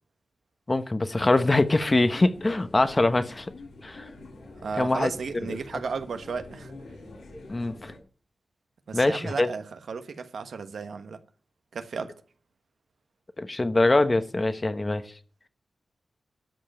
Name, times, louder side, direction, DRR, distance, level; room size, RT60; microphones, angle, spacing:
voice 1, 0.7-3.5 3.8-4.1 4.8-5.1 5.5-5.6 7.5-7.9 8.9-9.5 13.4-15.0, left 2 dB, 25° left, 1.0 m, -23 dB
sound 1, 1.6-8.0, left 2 dB, 85° left, 6.9 m, -46 dB
voice 2, 4.5-6.7 8.9-11.2 11.7-12.1, right 5 dB, 80° right, 1.2 m, -34 dB
13.0 x 5.3 x 8.9 m
wide cardioid pair, 100°, 0 cm